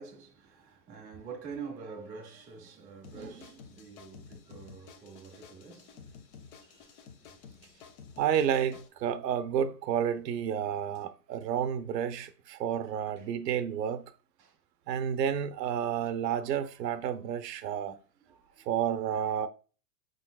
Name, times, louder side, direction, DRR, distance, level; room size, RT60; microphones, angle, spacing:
voice 1, 0.0-6.2 9.2-9.3 12.2-12.3 13.2-13.3 14.4-14.6 18.3-18.7, right 5 dB, 10° right, 0.4 m, -46 dB
sound 1, 3.0-8.9, left 6 dB, 60° left, 1.0 m, -52 dB
voice 2, 8.2-14.1 14.9-18.0 18.7-19.5, right 9 dB, 75° right, 0.8 m, -30 dB
5.0 x 3.9 x 2.3 m
hypercardioid pair, 140°, 49 cm